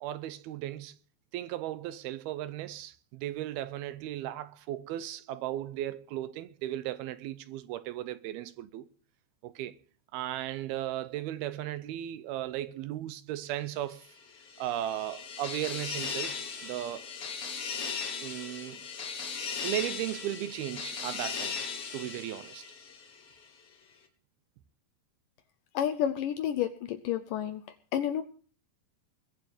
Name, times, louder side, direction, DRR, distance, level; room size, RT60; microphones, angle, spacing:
voice 1, 0.0-1.0 1.3-8.9 9.4-9.8 10.1-14.1 14.6-17.1 18.2-18.9 19.6-21.6 21.9-22.6, right 13 dB, 80° right, 2.6 m, -36 dB
sound 1, 14.2-23.3, left 5 dB, 45° left, 2.3 m, -38 dB
voice 2, 25.7-27.6 27.9-28.2, left 10 dB, 75° left, 2.0 m, -30 dB
21.5 x 7.5 x 6.7 m
omnidirectional pair, 4.5 m